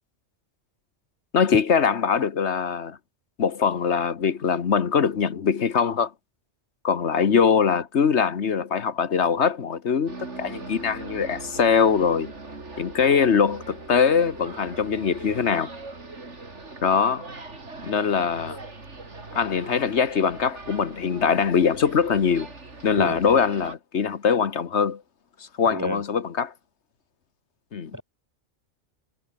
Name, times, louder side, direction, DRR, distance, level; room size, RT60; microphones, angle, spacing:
voice 1, 1.3-3.0 3.4-6.1 6.8-12.3 12.8-15.7 16.8-17.2 17.8-18.6 19.3-22.5 22.8-25.0 25.6-26.5 27.7-27.9, left 6 dB, 70° left, 1.5 m, -22 dB
sound 1, 10.1-23.7, right 3 dB, 80° right, 3.8 m, -40 dB
voice 2, 25.7-26.0 27.9-28.0, equal, 15° right, 1.5 m, -30 dB
omnidirectional pair, 1.2 m